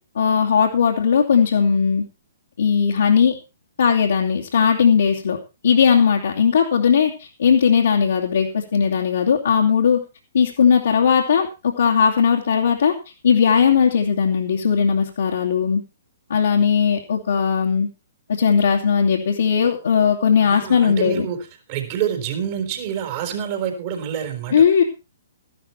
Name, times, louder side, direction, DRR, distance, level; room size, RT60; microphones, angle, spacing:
voice 1, 0.1-2.0 2.6-3.3 3.8-5.4 5.6-7.1 7.4-10.0 10.3-12.9 13.2-15.8 16.3-17.9 18.3-21.3 24.5-24.8, left 6 dB, 70° left, -3 dB, 2.5 m, -18 dB
voice 2, 20.4-21.4 21.7-24.5, right 9 dB, 45° right, 5 dB, 4.4 m, -27 dB
14.0 x 12.0 x 4.4 m, 0.29 s
figure-of-eight pair, 125°, 0 cm